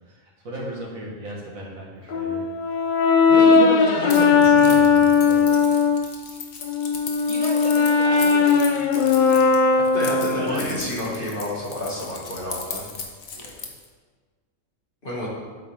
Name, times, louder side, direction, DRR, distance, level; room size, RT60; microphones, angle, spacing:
voice 1, 0.1-2.4 3.3-5.7 7.3-9.9 10.3-10.8 13.3-13.7, right 1 dB, 80° right, -3 dB, 2.1 m, -34 dB
Brass instrument, 2.1-6.1 6.6-10.7, left 5 dB, 55° left, 0.5 m, -18 dB
Keys jangling, 4.1-13.9, left 5 dB, 80° left, 1.4 m, -37 dB
voice 2, 9.9-12.9 15.0-15.3, left 1 dB, 40° left, -5 dB, 2.2 m, -29 dB
8.4 x 7.9 x 3.6 m, 1.5 s
omnidirectional pair, 1.4 m